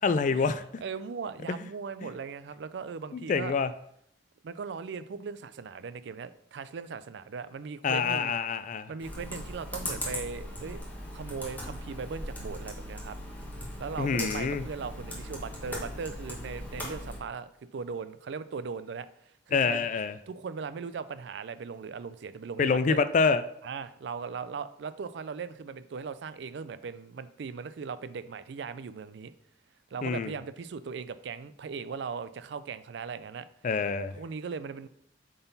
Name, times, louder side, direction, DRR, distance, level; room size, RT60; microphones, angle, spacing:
voice 1, 0.0-0.6 3.1-3.7 7.8-8.9 14.0-14.6 19.5-20.2 22.6-23.4 30.0-30.3 33.6-34.1, left 5 dB, 40° left, 12 dB, 0.3 m, -26 dB
voice 2, 0.8-3.5 4.4-8.3 8.9-10.8 11.1-13.2 13.8-19.8 20.3-23.0 23.6-29.3 29.9-33.5 34.1-34.9, right 5 dB, 65° right, 14 dB, 0.4 m, -38 dB
Computer keyboard, 9.0-17.2, left 1 dB, 10° left, 1.2 m, -39 dB
7.9 x 3.9 x 4.0 m, 0.71 s
head